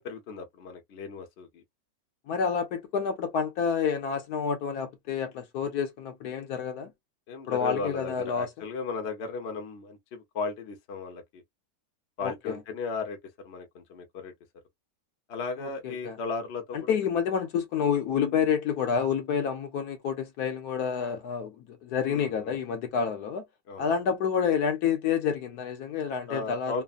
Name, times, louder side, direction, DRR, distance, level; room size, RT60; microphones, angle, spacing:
voice 1, 0.0-1.6 7.3-11.4 12.2-13.2 13.4-14.3 15.3-16.9 22.1-22.6 23.7-23.8 26.3-26.8, left 4 dB, 50° left, 0.8 m, -36 dB
voice 2, 2.3-6.9 7.5-8.5 12.2-12.6 15.6-16.2 16.7-23.4 23.8-26.8, left 7 dB, 70° left, 1.2 m, -29 dB
3.3 x 2.0 x 2.4 m
omnidirectional pair, 1.9 m